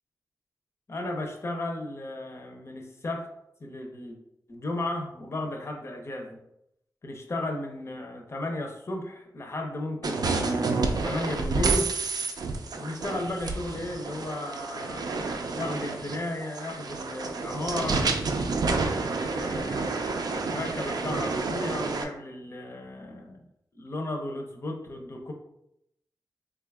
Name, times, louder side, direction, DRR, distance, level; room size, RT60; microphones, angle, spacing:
voice 1, 0.9-3.3 3.6-4.2 4.5-6.4 7.0-11.9 12.8-18.1 19.0-23.5 23.7-25.3, left 1 dB, 40° left, 3 dB, 0.6 m, -35 dB
sound 1, 10.0-22.0, right 3 dB, 70° right, 0.4 m, -29 dB
3.6 x 2.3 x 3.4 m, 0.78 s
wide cardioid pair, 100°, 7 cm